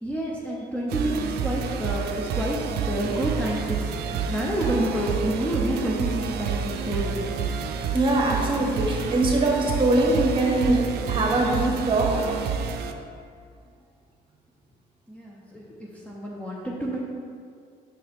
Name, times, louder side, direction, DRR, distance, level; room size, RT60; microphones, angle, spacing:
voice 1, 0.0-2.6 2.9-7.2 15.1-17.0, right 1 dB, 10° left, -4 dB, 0.7 m, -29 dB
sound 1, 0.9-12.9, right 6 dB, 70° right, 0.5 m, -29 dB
voice 2, 7.6-10.8 11.1-12.1, right 2 dB, 30° right, -1 dB, 1.2 m, -22 dB
6.4 x 4.6 x 3.5 m, 2.3 s
cardioid pair, 110°, 17 cm